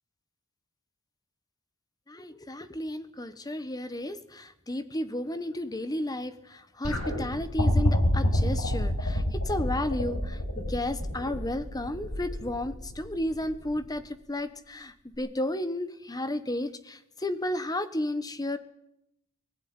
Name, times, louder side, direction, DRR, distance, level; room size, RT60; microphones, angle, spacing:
voice 1, 2.1-6.3 6.8-10.2 10.7-14.0 14.3-14.9 15.2-18.6, left 1 dB, 15° left, 11 dB, 1.2 m, -32 dB
sound 1, 6.8-14.0 15.1-15.2, left 1 dB, 90° left, 7.0 m, -28 dB
19.5 x 15.5 x 9.7 m, 0.80 s
head